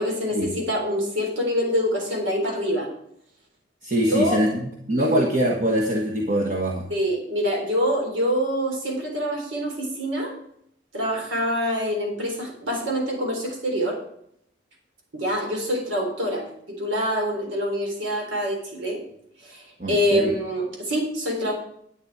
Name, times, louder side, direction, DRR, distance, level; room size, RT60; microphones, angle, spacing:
voice 1, 0.0-2.9 4.1-4.4 5.0-5.2 6.9-10.3 10.9-14.0 15.1-19.0 19.4-21.5, equal, 85° right, 1 dB, 3.9 m, -25 dB
voice 2, 3.8-4.6 4.9-6.9 19.8-20.4, equal, 45° right, -1 dB, 1.4 m, -23 dB
11.0 x 8.5 x 4.8 m, 0.71 s
head